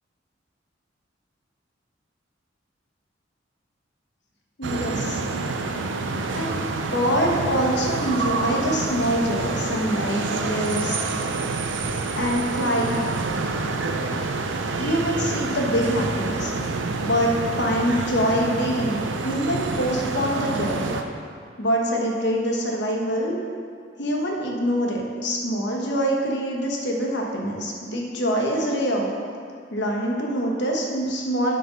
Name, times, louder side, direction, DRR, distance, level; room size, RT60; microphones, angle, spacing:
voice 1, 4.6-5.2 6.3-6.5 6.9-11.0 12.2-13.0 14.8-16.5 17.0-20.9 21.6-23.3 24.0-29.1 29.7-31.6, equal, 65° left, -1 dB, 1.3 m, -24 dB
sound 1, 4.6-21.0, right 3 dB, 75° right, 0.6 m, -27 dB
7.7 x 5.4 x 5.7 m, 2.1 s
head